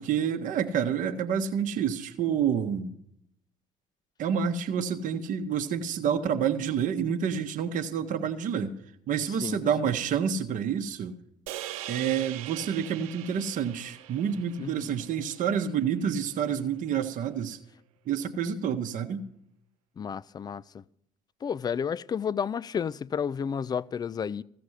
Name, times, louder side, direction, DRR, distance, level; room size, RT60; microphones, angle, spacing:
voice 1, 0.0-2.9 4.2-8.7 9.1-11.1 11.9-17.6 18.1-19.2, right 7 dB, 45° right, 1.0 m, -28 dB
sound 1, 11.5-15.9, right 14 dB, 70° right, 0.5 m, -41 dB
voice 2, 14.6-14.9 20.0-20.8 21.4-24.4, left 7 dB, 20° left, 0.4 m, -31 dB
15.0 x 6.8 x 7.9 m
figure-of-eight pair, 60°, 19 cm